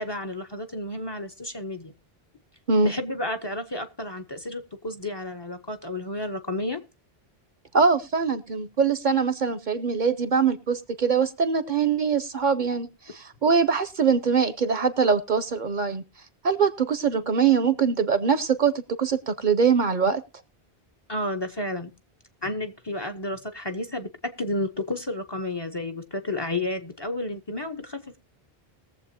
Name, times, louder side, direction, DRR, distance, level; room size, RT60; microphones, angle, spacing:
voice 1, 0.0-1.9 2.8-6.8 21.1-21.9 22.4-28.2, left 1 dB, 25° left, 0.8 m, -31 dB
voice 2, 7.7-16.0 16.4-20.2, right 5 dB, 55° right, 0.8 m, -23 dB
20.5 x 7.4 x 2.8 m
omnidirectional pair, 1.0 m